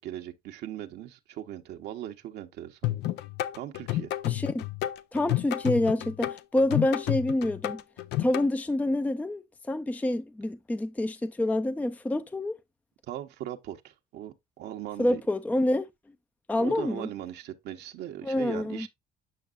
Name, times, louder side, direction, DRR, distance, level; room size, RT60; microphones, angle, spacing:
voice 1, 0.0-2.8 3.5-4.1 13.1-15.2 16.6-18.9, right 12 dB, 80° right, 1.1 m, -39 dB
sound 1, 2.8-8.5, left 14 dB, 85° left, 0.7 m, -30 dB
voice 2, 4.3-4.6 5.1-7.8 8.2-12.5 15.0-15.9 16.5-17.1 18.2-18.9, left 1 dB, 10° left, 0.5 m, -27 dB
8.6 x 5.9 x 2.5 m
cardioid pair, 110°, 17 cm